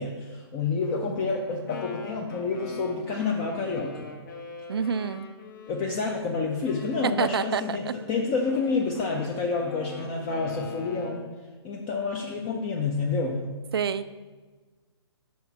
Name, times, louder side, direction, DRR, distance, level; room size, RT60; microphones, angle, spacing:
voice 1, 0.0-4.1 5.7-11.2 11.6-13.5, left 4 dB, 20° left, 0 dB, 0.5 m, -29 dB
Wind instrument woodwind instrument, 1.4-6.2 6.6-11.4, left 4 dB, 45° left, 1.2 m, -43 dB
voice 2, 4.7-5.3 7.0-7.9 13.7-14.1, right 7 dB, 60° right, 14 dB, 0.4 m, -27 dB
5.7 x 4.3 x 5.5 m, 1.3 s
figure-of-eight pair, 130°, 14 cm